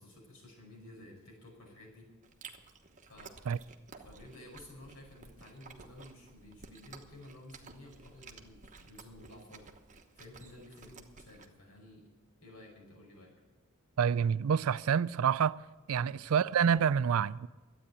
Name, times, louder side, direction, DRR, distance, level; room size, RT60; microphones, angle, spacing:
voice 1, 0.0-2.1 3.1-3.6 4.0-9.7 10.1-12.1 12.4-13.3 15.9-16.1, left 1 dB, 75° left, 5.4 m, -53 dB
Chewing mastication, 2.2-11.5, right 4 dB, 35° right, 1.1 m, -54 dB
voice 2, 14.0-15.6 15.9-17.5, right 7 dB, 70° right, 0.4 m, -27 dB
12.5 x 9.0 x 8.5 m
head